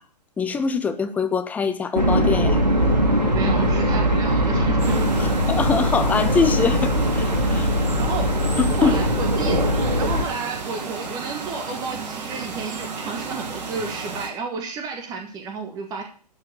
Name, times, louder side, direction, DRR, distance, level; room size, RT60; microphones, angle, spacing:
voice 1, 0.4-2.6 5.2-7.7 8.6-9.0, left 5 dB, 5° left, 0.7 m, -23 dB
sound 1, 1.9-10.2, equal, 80° right, 2.5 m, -21 dB
voice 2, 3.3-5.0 8.0-8.3 8.8-9.6 10.0-16.0, right 4 dB, 20° right, 1.3 m, -31 dB
sound 2, 4.8-14.3, right 4 dB, 45° right, 5.3 m, -33 dB
13.0 x 4.8 x 8.4 m
figure-of-eight pair, 120°, 21 cm